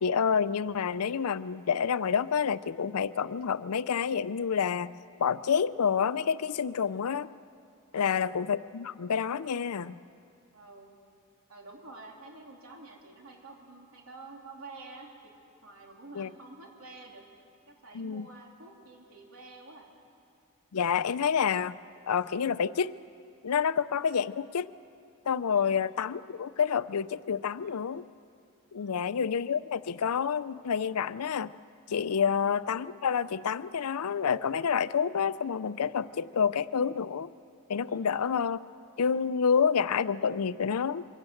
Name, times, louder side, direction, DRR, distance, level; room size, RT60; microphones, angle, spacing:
voice 1, 0.0-4.9 5.2-7.3 7.9-10.0 16.2-16.3 17.9-18.3 20.7-21.8 22.1-22.9 23.4-24.7 25.3-28.1 28.7-31.5 31.9-37.3 37.7-38.6 39.0-41.0, left 7 dB, 85° left, 16 dB, 0.5 m, -28 dB
voice 2, 7.9-8.3 10.5-10.9 11.5-15.3 15.6-17.2 17.7-19.9 24.0-24.2 25.5-25.8 27.6-27.9 28.7-29.3 32.2-32.5 37.9-38.2, right 3 dB, 70° right, 0 dB, 3.5 m, -50 dB
23.5 x 16.0 x 7.9 m, 2.4 s
head